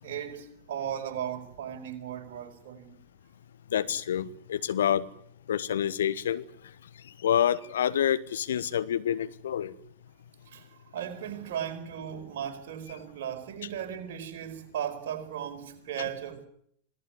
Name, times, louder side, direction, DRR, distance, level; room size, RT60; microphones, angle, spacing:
voice 1, 0.0-2.9 10.5-16.5, right 9 dB, 55° right, 4.8 m, -36 dB
voice 2, 3.7-5.1 5.5-6.4 7.2-9.7, left 9 dB, 65° left, 1.2 m, -27 dB
26.0 x 18.0 x 9.7 m
figure-of-eight pair, 90°, 0 cm